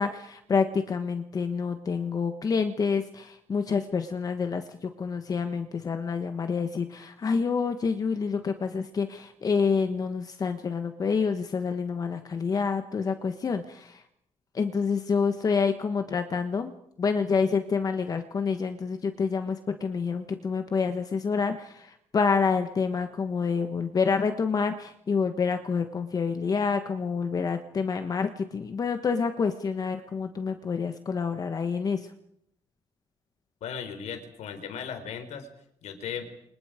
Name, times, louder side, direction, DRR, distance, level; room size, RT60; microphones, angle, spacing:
voice 1, 0.0-14.0 14.5-16.7 17.0-32.1, left 5 dB, 30° left, 7 dB, 1.4 m, -28 dB
voice 2, 33.6-35.5 35.8-36.3, left 7 dB, 75° left, 8 dB, 4.2 m, -36 dB
30.0 x 26.5 x 5.1 m, 0.72 s
cardioid pair, 170°, 12 cm